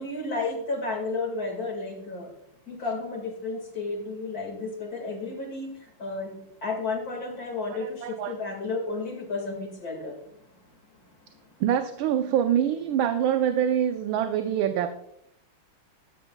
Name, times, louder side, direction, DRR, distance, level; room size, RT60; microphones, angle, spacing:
voice 1, 0.0-2.3 2.7-5.7 6.0-6.3 6.6-10.1, left 3 dB, 45° left, 3 dB, 2.4 m, -32 dB
voice 2, 7.7-8.3 11.6-15.0, right 9 dB, 75° right, 7 dB, 1.5 m, -25 dB
14.0 x 13.5 x 2.3 m, 0.76 s
omnidirectional pair, 2.3 m